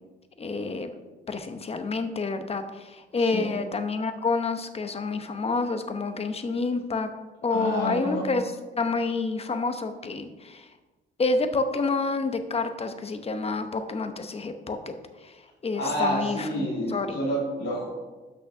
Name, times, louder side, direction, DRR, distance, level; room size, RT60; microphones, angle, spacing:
voice 1, 0.4-0.9 1.3-7.1 7.4-8.4 8.8-10.7 11.2-14.9 15.2-15.4 15.6-17.2, left 3 dB, 30° left, 8 dB, 0.9 m, -28 dB
voice 2, 3.2-3.5 7.5-8.2 15.7-17.9, equal, 70° left, -7 dB, 2.7 m, -29 dB
6.3 x 6.1 x 6.0 m, 1.2 s
cardioid pair, 90°, 20 cm